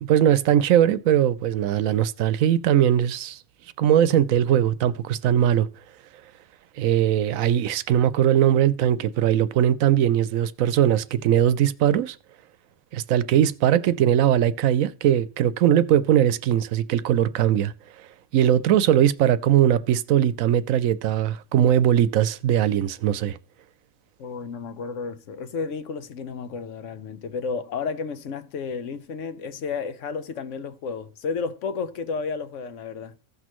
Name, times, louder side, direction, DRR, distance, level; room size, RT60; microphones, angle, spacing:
voice 1, 0.0-3.4 3.8-5.7 6.8-12.2 12.9-17.7 18.3-23.4, right 10 dB, 80° right, 1.0 m, -20 dB
voice 2, 24.2-33.1, left 5 dB, 65° left, 1.1 m, -32 dB
15.5 x 6.1 x 3.0 m
omnidirectional pair, 1.4 m